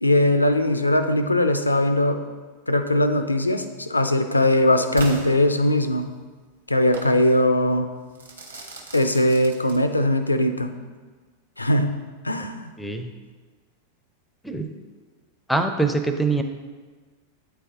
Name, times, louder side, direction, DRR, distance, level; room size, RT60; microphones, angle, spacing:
voice 1, 0.0-2.2 2.7-6.1 6.7-7.9 8.9-10.7 11.6-12.0 12.2-12.7, left 1 dB, 80° left, 9 dB, 0.4 m, -20 dB
Crackle / Fireworks, 5.0-6.1 6.9-7.2 8.2-10.2, right 3 dB, 75° right, 0.8 m, -37 dB
voice 2, 12.8-13.1 14.4-14.7 15.5-16.4, right 3 dB, 5° left, 7 dB, 0.5 m, -23 dB
8.6 x 3.3 x 3.5 m, 1.4 s
figure-of-eight pair, 90°, 0 cm